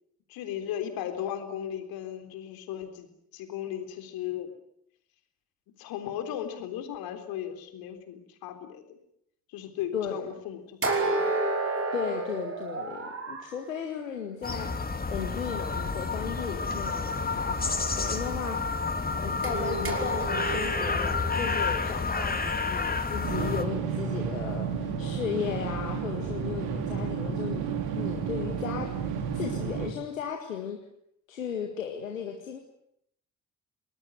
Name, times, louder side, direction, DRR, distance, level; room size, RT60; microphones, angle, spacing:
voice 1, 0.3-4.5 5.8-9.0 9.5-11.3, left 10 dB, 65° left, 7 dB, 3.8 m, -36 dB
voice 2, 9.9-10.3 11.9-14.7 15.1-18.6 19.1-30.8 31.3-32.6, left 7 dB, 80° left, 3 dB, 1.9 m, -35 dB
sound 1, 10.8-13.5 19.4-23.5, right 3 dB, 35° right, 5.5 m, -32 dB
sound 2, 14.4-23.6, left 4 dB, 20° left, 3.0 m, -30 dB
sound 3, 23.2-29.9, right 7 dB, 65° right, 3.5 m, -31 dB
30.0 x 20.0 x 9.1 m, 0.75 s
figure-of-eight pair, 40°, 39 cm